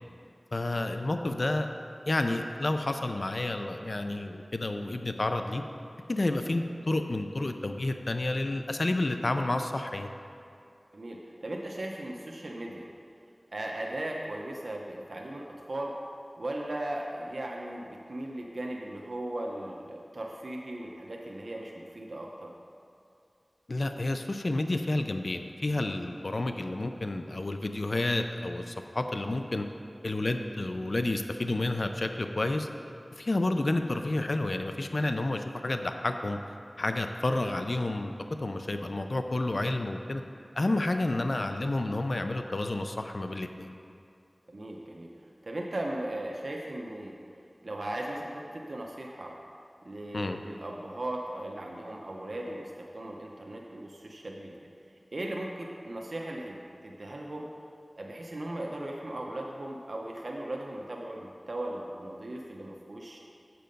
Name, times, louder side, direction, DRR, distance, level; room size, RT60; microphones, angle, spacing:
voice 1, 0.5-1.7 2.1-5.6 6.1-10.1 23.7-29.7 30.0-32.7 33.1-36.4 36.8-40.2 40.6-43.7 50.1-50.4, left 2 dB, 65° left, 6 dB, 0.4 m, -30 dB
voice 2, 10.9-12.9 13.5-15.9 16.4-22.5 44.5-45.1 45.4-47.2 47.6-49.4 49.8-54.7 55.1-57.5 58.0-63.2, right 1 dB, 75° right, -1 dB, 0.7 m, -37 dB
7.5 x 6.9 x 5.3 m, 2.5 s
wide cardioid pair, 60°, 0 cm